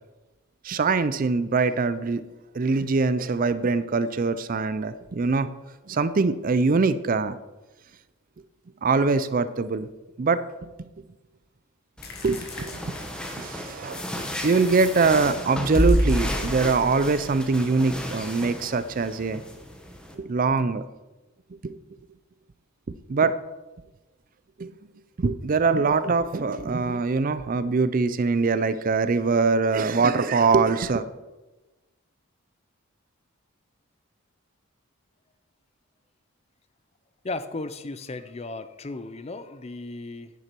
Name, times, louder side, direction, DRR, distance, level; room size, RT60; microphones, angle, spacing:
voice 1, 0.6-2.2 2.5-5.5 5.9-7.4 8.8-9.9 10.2-10.4 12.2-12.4 12.7-13.0 13.4-14.0 14.4-19.4 20.1-20.8 21.6-21.8 23.1-23.3 24.6-24.7 25.2-31.0, right 4 dB, 40° right, 14 dB, 0.4 m, -23 dB
sound 1, 12.0-13.5 13.9-15.2 15.7-16.9, left 6 dB, 45° left, 1.4 m, -44 dB
sound 2, 12.0-20.2, equal, 5° left, 1.0 m, -30 dB
voice 2, 37.2-40.3, left 2 dB, 30° left, 12 dB, 0.5 m, -35 dB
10.0 x 9.6 x 4.5 m, 1.1 s
head